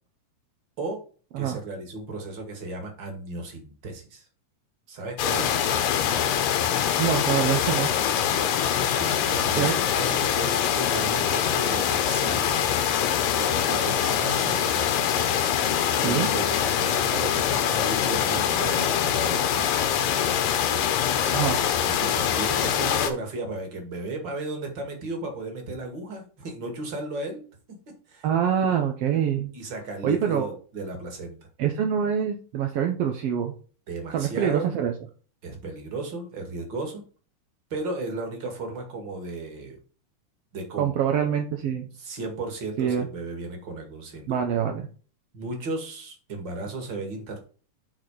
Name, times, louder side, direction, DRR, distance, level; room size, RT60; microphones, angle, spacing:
voice 1, 1.4-4.2 4.9-5.6 8.7-12.7 13.3-14.8 16.0-19.7 21.9-27.4 27.7-27.8 28.1-28.3 29.5-31.4 33.9-34.7 35.4-37.0 37.7-39.8 40.5-40.9 42.0-44.4 45.3-47.4, right 2 dB, 40° right, 4 dB, 2.3 m, -35 dB
sound 1, 5.2-23.1, left 9 dB, 90° left, 2.6 m, -24 dB
voice 2, 7.0-7.9 9.6-9.8 16.0-16.3 21.3-21.6 28.2-29.5 30.0-30.5 31.6-33.5 34.1-34.9 40.8-41.9 42.8-43.1 44.3-44.9, right 8 dB, 70° right, 3 dB, 1.5 m, -25 dB
8.6 x 4.3 x 4.8 m, 0.39 s
omnidirectional pair, 3.7 m